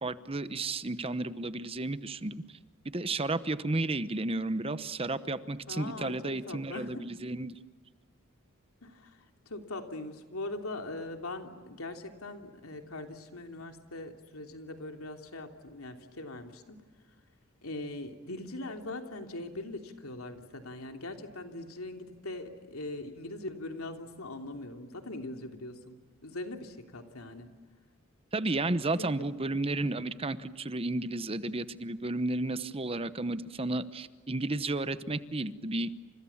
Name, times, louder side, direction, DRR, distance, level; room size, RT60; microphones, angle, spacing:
voice 1, 0.0-2.4 2.9-7.6 28.3-36.0, right 2 dB, 25° right, 13 dB, 0.9 m, -32 dB
voice 2, 5.7-7.1 8.8-9.2 9.4-16.8 17.6-27.5 29.0-29.1, left 2 dB, 90° left, 5 dB, 3.2 m, -41 dB
29.5 x 27.5 x 7.3 m, 1.4 s
head